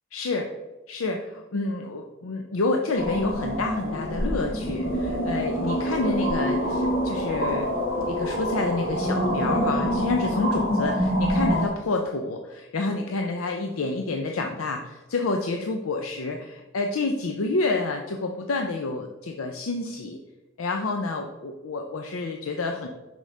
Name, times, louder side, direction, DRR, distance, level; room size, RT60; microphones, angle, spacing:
voice 1, 0.1-0.5 0.9-7.7 8.0-20.2 20.6-22.9, left 3 dB, 85° left, 3 dB, 0.5 m, -28 dB
sound 1, 3.0-11.7, equal, 65° left, 1.6 m, -26 dB
6.2 x 5.2 x 3.3 m, 1.1 s
head